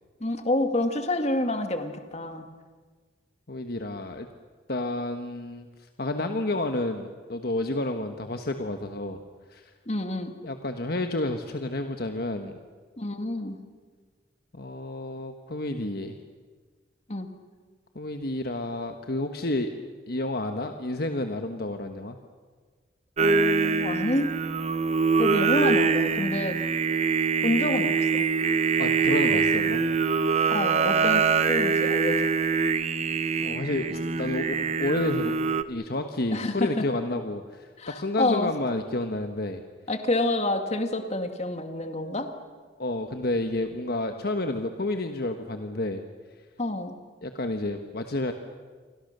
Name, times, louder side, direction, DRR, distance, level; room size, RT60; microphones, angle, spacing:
voice 1, 0.2-2.5 9.9-10.3 13.0-13.6 17.1-17.3 23.2-24.3 25.2-26.6 27.4-28.3 30.5-32.3 36.3-36.9 37.8-38.5 39.9-42.3 46.6-47.0, left 1 dB, 35° left, 6 dB, 2.2 m, -28 dB
voice 2, 3.5-4.3 4.7-5.7 6.0-9.2 9.5-9.6 10.4-12.5 14.5-16.2 17.9-19.7 20.1-22.2 28.8-29.8 33.4-35.3 35.7-39.6 42.8-46.0 47.2-48.3, left 2 dB, 60° left, 6 dB, 1.3 m, -30 dB
Singing, 23.2-35.6, right 5 dB, 40° right, 0.9 m, -24 dB
29.0 x 24.0 x 6.8 m, 1.5 s
head